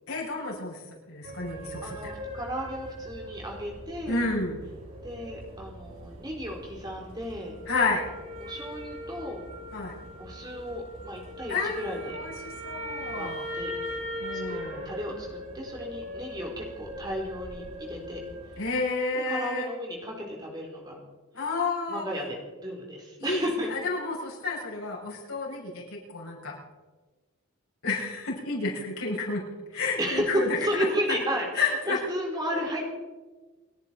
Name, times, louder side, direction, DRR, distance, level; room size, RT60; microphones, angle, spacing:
voice 1, 0.1-0.8 1.1-2.1 4.1-4.6 7.7-8.0 9.7-9.9 11.5-13.5 14.2-14.9 18.6-19.7 21.3-22.0 23.2-26.5 27.8-29.4 29.7-30.9 31.5-32.0, left 3 dB, 85° left, -4 dB, 7.3 m, -30 dB
sound 1, 1.2-18.6, equal, 80° right, 6.7 m, -40 dB
voice 2, 1.8-4.3 5.0-7.6 8.4-9.5 10.2-12.2 13.1-13.3 13.5-13.7 14.3-14.6 14.8-18.2 19.3-21.0 21.9-23.7 30.0-30.3 30.6-32.9, equal, 20° right, 0 dB, 3.9 m, -34 dB
29.5 x 10.5 x 4.5 m, 1.3 s
head